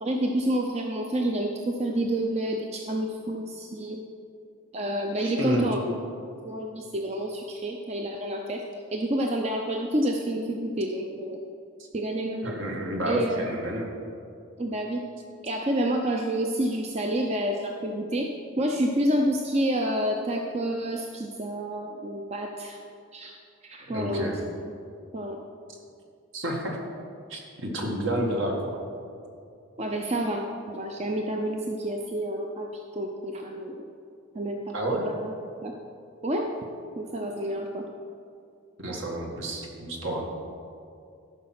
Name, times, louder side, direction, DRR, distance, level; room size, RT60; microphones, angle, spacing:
voice 1, 0.0-4.0 4.7-6.0 6.4-8.6 8.9-11.4 11.9-12.6 13.1-13.5 14.6-15.0 15.4-18.3 18.6-22.8 23.1-23.4 23.6-24.3 25.1-25.4 28.2-28.3 29.8-32.7 32.9-33.9 34.3-34.7 35.1-35.3 35.6-35.7 36.2-36.5 37.0-37.8, right 1 dB, 30° right, 2 dB, 0.6 m, -29 dB
voice 2, 5.2-5.7 12.4-13.9 23.9-24.4 26.3-26.8 27.3-28.8 34.7-35.1 38.8-40.2, right 1 dB, 65° right, 0 dB, 1.8 m, -29 dB
13.5 x 5.7 x 6.0 m, 2.4 s
head